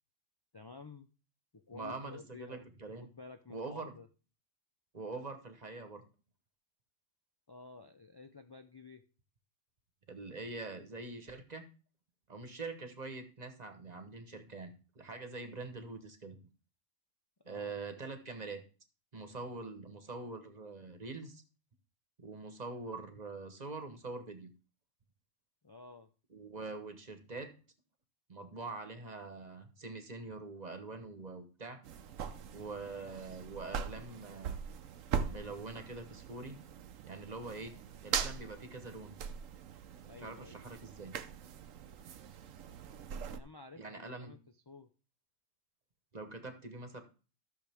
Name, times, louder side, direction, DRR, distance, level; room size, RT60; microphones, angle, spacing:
voice 1, 0.5-1.1 1.5-2.7 3.0-4.1 7.5-9.0 17.5-17.7 25.6-26.1 40.0-40.6 43.3-44.4 44.7-44.9, left 4 dB, 35° left, 7 dB, 0.4 m, -52 dB
voice 2, 1.7-3.1 3.5-3.9 4.9-6.0 10.1-11.7 12.3-16.4 17.4-18.6 19.1-21.4 22.2-24.5 26.3-27.5 28.3-31.8 32.5-34.6 35.3-36.6 37.1-37.7 38.0-39.2 40.2-41.1 43.8-44.4 46.1-47.0, right 3 dB, 35° right, 7 dB, 1.2 m, -44 dB
sound 1, 31.8-43.4, right 7 dB, 80° right, 1.1 m, -41 dB
14.0 x 6.6 x 3.5 m, 0.36 s
omnidirectional pair, 1.3 m